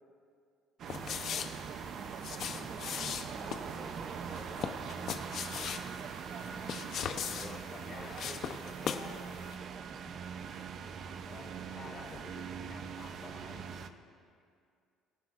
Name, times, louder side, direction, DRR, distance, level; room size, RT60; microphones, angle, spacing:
sound 1, 0.8-13.9, right 7 dB, 55° right, 0.6 m, -42 dB
sound 2, 0.9-9.2 9.4-9.5, left 8 dB, 55° left, 0.8 m, -39 dB
voice 1, 1.0-2.0 2.5-5.2 6.5-6.7 7.3-11.0, left 2 dB, 15° left, -7 dB, 2.5 m, -52 dB
voice 2, 7.7-8.2 11.2-13.8, left 4 dB, 35° left, -1 dB, 4.0 m, -50 dB
24.5 x 11.5 x 2.5 m, 2.2 s
cardioid pair, 110°, 0 cm